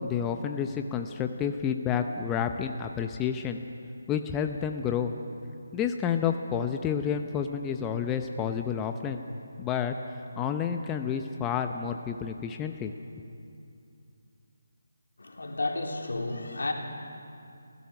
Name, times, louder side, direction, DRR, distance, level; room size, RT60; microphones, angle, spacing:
voice 1, 0.0-3.6 4.1-5.1 5.7-9.2 9.6-10.0 10.4-12.9, left 7 dB, 15° left, 6 dB, 0.7 m, -30 dB
voice 2, 15.2-16.7, left 2 dB, 80° left, 2 dB, 3.1 m, -32 dB
26.5 x 16.5 x 6.0 m, 2.6 s
figure-of-eight pair, 160°, 0 cm